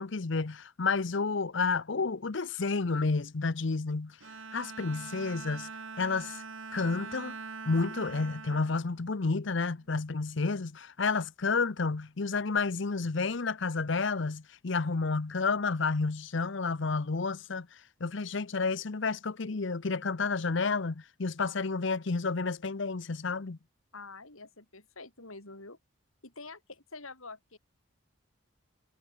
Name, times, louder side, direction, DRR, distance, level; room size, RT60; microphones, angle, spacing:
voice 1, 0.0-4.2 4.5-5.7 6.0-6.4 6.7-7.4 7.7-17.7 18.0-23.6, left 4 dB, 60° left, 0.7 m, -30 dB
Bowed string instrument, 4.2-9.7, right 4 dB, 70° right, 1.7 m, -44 dB
voice 2, 23.9-25.8 26.2-27.6, left 3 dB, 80° left, 6.1 m, -47 dB
head